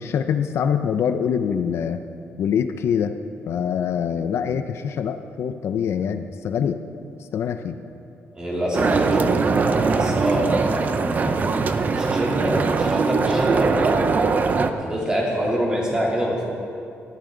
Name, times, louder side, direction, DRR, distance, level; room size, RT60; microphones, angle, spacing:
voice 1, 0.0-2.0 2.4-3.1 3.5-6.8 7.3-7.8, left 7 dB, 65° left, 8 dB, 0.6 m, -24 dB
voice 2, 8.3-11.4 11.9-14.2 14.8-16.4, equal, 15° right, -4 dB, 3.1 m, -26 dB
sound 1, 8.7-14.7, right 4 dB, 35° right, 0.6 m, -21 dB
18.5 x 12.5 x 3.9 m, 2.5 s
cardioid pair, 155°, 5 cm